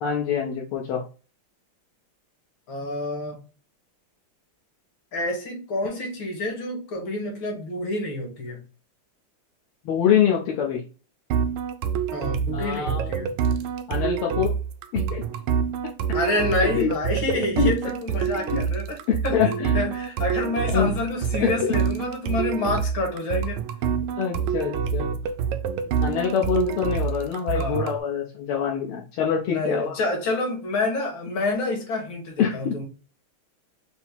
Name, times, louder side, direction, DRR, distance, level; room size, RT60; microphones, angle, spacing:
voice 1, 0.0-1.0 9.9-10.8 12.5-13.1 13.9-14.6 14.9-15.2 16.8-16.9 17.6-17.7 18.4-18.7 19.3-19.7 20.7-20.9 21.4-21.7 24.2-25.1 26.0-30.0 32.4-32.8, left 8 dB, 85° left, 1.8 m, -25 dB
voice 2, 2.7-3.4 5.1-8.6 12.1-13.3 16.1-19.0 19.2-23.6 27.5-27.9 29.5-32.9, left 2 dB, 65° left, 2.2 m, -28 dB
sound 1, 11.3-28.0, right 7 dB, 80° right, 1.3 m, -27 dB
5.4 x 2.0 x 4.3 m
omnidirectional pair, 2.3 m